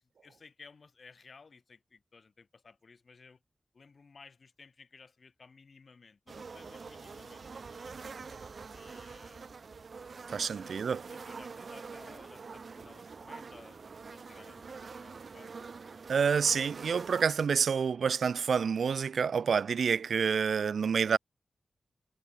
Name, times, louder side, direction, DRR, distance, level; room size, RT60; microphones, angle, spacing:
voice 1, 0.2-3.4 3.7-7.9 8.7-9.6 10.3-10.7 11.1-13.8 14.1-15.5 15.9-16.0, left 4 dB, 60° left, 7.4 m, -57 dB
sound 1, 6.3-17.3, right 5 dB, 65° right, 4.9 m, -46 dB
voice 2, 10.3-11.0 16.1-21.2, right 6 dB, 90° right, 0.3 m, -28 dB
wide cardioid pair, 70°, 0 cm